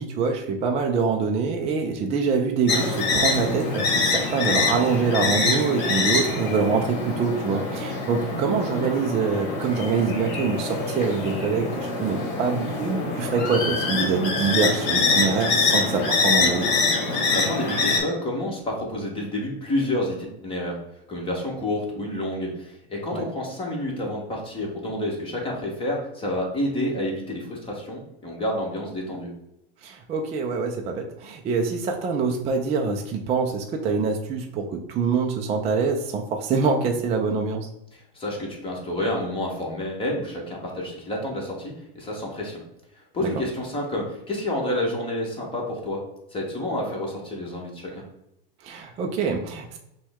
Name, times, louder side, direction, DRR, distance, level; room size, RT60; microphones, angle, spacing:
voice 1, 0.0-16.7 23.1-23.3 29.8-37.7 48.6-49.8, right 5 dB, 20° right, 3 dB, 0.4 m, -25 dB
sound 1, 2.7-18.0, left 3 dB, 35° left, 1.4 m, -25 dB
voice 2, 17.1-20.8 21.1-29.3 37.9-42.6 43.1-46.0 46.3-48.0, left 1 dB, 20° left, -2 dB, 1.3 m, -29 dB
5.8 x 2.3 x 3.5 m, 0.83 s
supercardioid pair, 125°, 29 cm